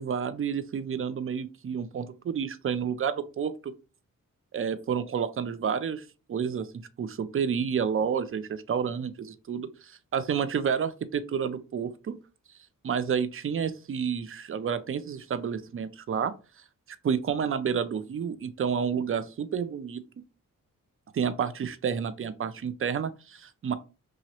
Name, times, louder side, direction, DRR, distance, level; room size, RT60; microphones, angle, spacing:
voice 1, 0.0-3.7 4.5-6.7 7.0-12.2 12.8-16.3 17.0-20.0 21.1-23.7, right 7 dB, 40° right, 13 dB, 0.4 m, -30 dB
2.9 x 2.5 x 2.8 m, 0.32 s
cardioid pair, 50°, 33 cm